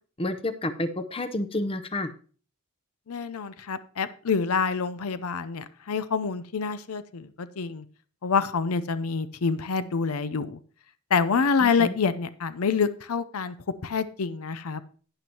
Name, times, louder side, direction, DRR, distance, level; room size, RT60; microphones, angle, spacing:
voice 1, 0.2-2.1 11.6-11.9, left 1 dB, 25° left, 11 dB, 0.6 m, -30 dB
voice 2, 3.1-7.8 8.2-10.6 11.1-13.5 13.8-14.8, left 5 dB, 80° left, 13 dB, 0.6 m, -27 dB
11.5 x 9.2 x 2.9 m, 0.41 s
head